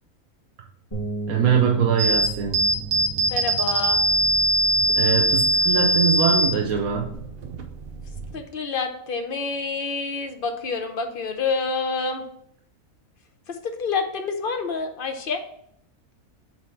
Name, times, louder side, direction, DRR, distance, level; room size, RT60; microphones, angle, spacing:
Bass guitar, 0.9-7.2, right 4 dB, 20° left, 2.5 m, -36 dB
voice 1, 1.3-2.7 5.0-7.1, right 6 dB, 80° right, 1 dB, 1.2 m, -22 dB
sound 1, 2.0-8.4, right 1 dB, 50° right, 0.8 m, -22 dB
voice 2, 3.3-4.0 8.3-12.2 13.5-15.4, left 4 dB, 50° left, 6 dB, 0.7 m, -28 dB
6.0 x 4.2 x 4.4 m, 0.70 s
omnidirectional pair, 1.5 m